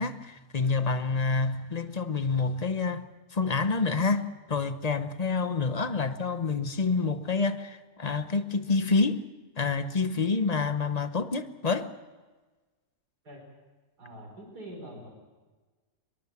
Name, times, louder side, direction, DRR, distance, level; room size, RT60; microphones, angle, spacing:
voice 1, 0.0-3.1 3.3-9.2 9.6-11.9, left 4 dB, 30° left, 0.8 m, -28 dB
voice 2, 14.0-15.1, right 1 dB, 90° right, 4.7 m, -44 dB
22.5 x 22.0 x 7.3 m
omnidirectional pair, 1.7 m